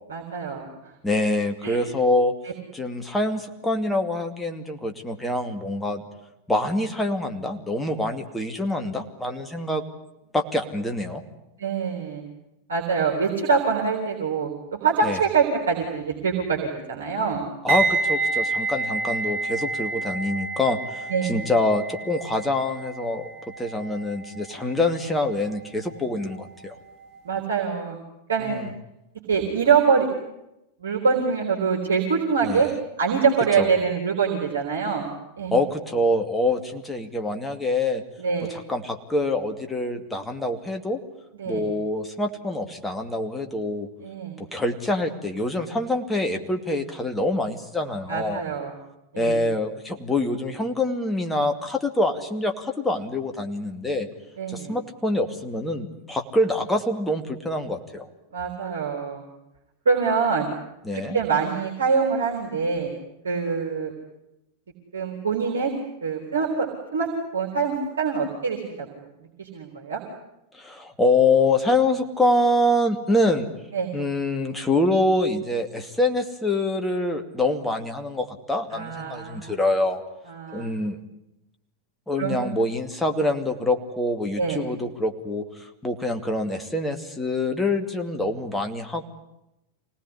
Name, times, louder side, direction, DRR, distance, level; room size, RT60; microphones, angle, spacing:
voice 1, 0.1-0.7 1.6-1.8 11.6-12.2 12.7-14.5 14.8-17.4 21.1-21.5 27.2-28.0 28.3-28.6 29.3-30.1 30.8-32.7 33.0-35.5 38.2-38.5 41.4-41.7 44.0-44.4 48.1-48.7 49.1-49.4 54.4-54.8 58.3-59.2 59.9-60.5 60.9-62.9 63.2-63.9 64.9-65.7 66.0-66.7 66.9-67.1 67.3-69.0 69.4-70.0 73.7-73.9 78.7-79.5 80.3-80.7 82.2-82.5 84.4-84.6, right 5 dB, 65° right, 1 dB, 3.8 m, -24 dB
voice 2, 1.0-2.3 2.7-6.1 6.5-9.9 10.3-11.2 15.0-15.2 17.6-23.3 23.6-26.7 28.4-28.7 32.4-32.6 33.6-33.7 35.5-38.0 38.5-41.0 41.5-43.9 44.4-48.4 49.2-54.1 54.5-58.1 60.8-61.2 70.5-73.5 73.9-80.0 80.5-81.0 82.1-89.0, left 2 dB, 5° left, 5 dB, 2.5 m, -25 dB
sound 1, 17.7-26.6 26.9-27.2, right 3 dB, 45° right, 3.4 m, -29 dB
25.5 x 18.5 x 9.9 m, 0.89 s
figure-of-eight pair, 90°, 0 cm